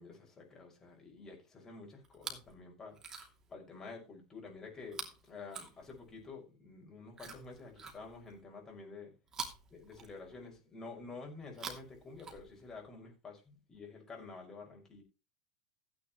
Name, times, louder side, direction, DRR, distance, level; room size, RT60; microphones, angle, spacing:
voice 1, 0.0-3.0 3.5-9.1 9.7-15.0, left 4 dB, 15° left, 5.9 m, -49 dB
Chewing mastication, 2.0-2.5 2.9-3.5 4.9-6.3 7.1-8.4 9.3-10.5 11.4-12.8 13.7-13.8, right 5 dB, 20° right, 2.8 m, -47 dB
15.0 x 10.0 x 3.1 m
supercardioid pair, 165°, 3 cm